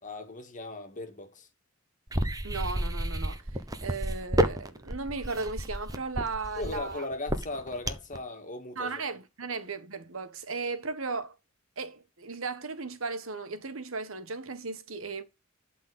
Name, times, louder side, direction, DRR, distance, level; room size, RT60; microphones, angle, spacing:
voice 1, 0.0-1.5 6.6-9.0, left 2 dB, 40° left, 2.1 m, -38 dB
sound 1, 2.1-8.2, right 1 dB, 20° right, 1.0 m, -30 dB
voice 2, 2.4-3.4 3.8-7.0 8.8-11.3 11.8-15.2, right 4 dB, 70° right, 1.4 m, -36 dB
12.0 x 4.2 x 8.0 m
head